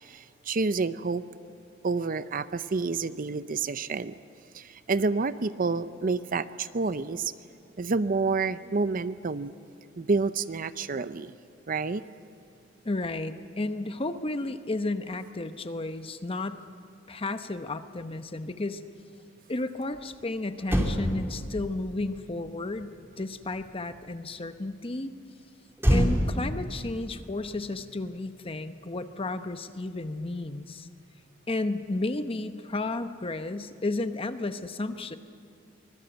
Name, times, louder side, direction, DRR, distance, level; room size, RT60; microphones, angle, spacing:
voice 1, 0.0-1.2 1.8-4.2 4.5-7.3 7.8-9.5 10.0-11.3 11.7-12.0, right 4 dB, 45° right, 14 dB, 0.6 m, -29 dB
voice 2, 12.8-16.6 17.1-18.8 19.5-25.1 25.9-30.9 31.5-35.2, left 2 dB, 30° left, 10 dB, 0.9 m, -33 dB
Motor vehicle (road), 20.2-20.3 20.6-24.1 25.8-28.4 28.6-28.9, equal, 15° right, 2.7 m, -29 dB
25.0 x 20.0 x 8.0 m, 2.4 s
head